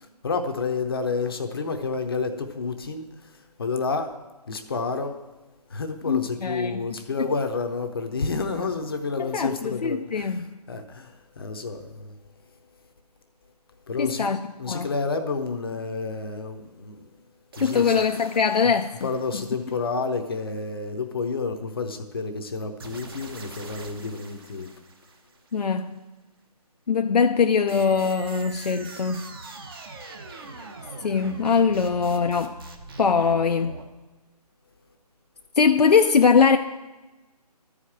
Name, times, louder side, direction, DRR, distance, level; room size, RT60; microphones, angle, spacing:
voice 1, 0.0-4.1 4.5-5.2 5.7-12.2 13.9-14.3 14.6-17.1 17.6-17.9 19.0-24.7, left 4 dB, 35° left, 0.7 m, -30 dB
voice 2, 6.1-6.8 9.2-10.5 14.0-14.9 17.6-19.1 25.5-26.0 26.9-29.3 31.0-32.6 33.0-33.8 35.6-36.6, left 5 dB, 75° left, 0.6 m, -22 dB
sound 1, 17.5-20.2 22.8-25.6 27.7-33.8, right 3 dB, 35° right, 0.9 m, -42 dB
12.5 x 4.9 x 7.3 m
figure-of-eight pair, 160°, 21 cm